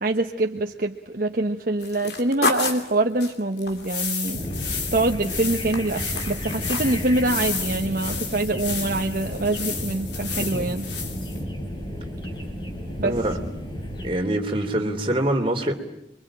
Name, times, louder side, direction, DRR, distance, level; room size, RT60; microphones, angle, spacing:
voice 1, 0.0-4.4 4.9-10.9 13.0-13.2, right 2 dB, 50° right, 4 dB, 1.1 m, -25 dB
sound 1, 1.8-5.2 5.5-7.0 7.3-7.7 8.1-8.2, left 3 dB, 65° left, 3.1 m, -30 dB
sound 2, 3.7-11.4, left 5 dB, 85° left, 4.3 m, -32 dB
sound 3, 4.3-14.1, equal, 25° left, 4.8 m, -32 dB
voice 2, 13.0-13.4 14.0-15.7, right 1 dB, 30° right, 2 dB, 3.2 m, -25 dB
27.5 x 23.5 x 8.9 m, 0.81 s
head